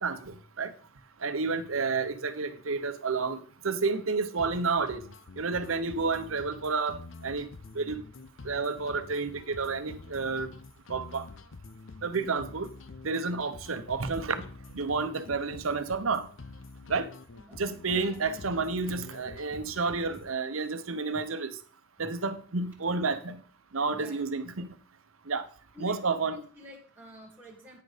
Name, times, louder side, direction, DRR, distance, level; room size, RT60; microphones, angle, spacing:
voice 1, 0.0-0.7 1.2-5.0 5.4-7.5 7.7-8.0 8.4-10.5 10.9-11.2 12.0-12.7 13.0-14.5 14.7-16.3 16.9-17.1 17.6-21.5 22.0-23.4 23.7-24.7 25.3-25.5 25.8-26.3, right 4 dB, 85° right, 0.9 m, -30 dB
sound 1, 4.4-20.4, left 3 dB, 65° left, 0.7 m, -47 dB
voice 2, 17.9-19.1 19.5-19.8 21.1-21.2 22.0-22.2 22.9-23.0 23.9-24.2 25.7-27.8, equal, 10° right, 1.6 m, -49 dB
9.5 x 6.5 x 5.0 m
head